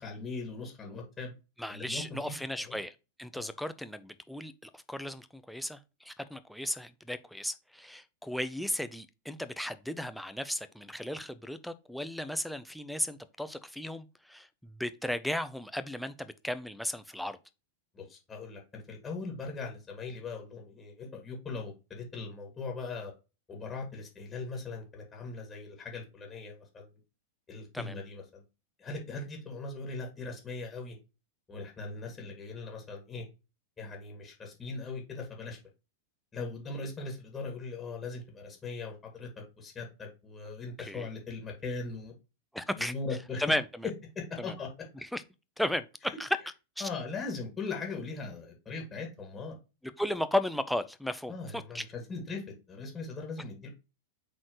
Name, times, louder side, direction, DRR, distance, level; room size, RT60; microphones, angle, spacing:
voice 1, 0.0-1.3 1.7-2.8 3.3-3.5 17.9-23.1 23.5-26.9 27.5-28.4 28.8-31.0 31.5-33.2 33.8-35.6 36.3-42.1 42.8-43.4 44.1-44.9 46.0-46.2 46.8-49.6 51.3-53.7, left 3 dB, 15° left, 2.4 m, -40 dB
voice 2, 1.6-2.9 3.2-14.5 14.8-17.4 27.7-27.9 40.9-41.1 42.5-42.9 43.4-43.6 44.4-44.5 45.1-45.2 45.6-45.8 46.2-46.3 46.8-46.9 49.8-51.8, left 1 dB, ahead, 0.6 m, -35 dB
7.5 x 4.2 x 3.1 m
figure-of-eight pair, 95°, 0 cm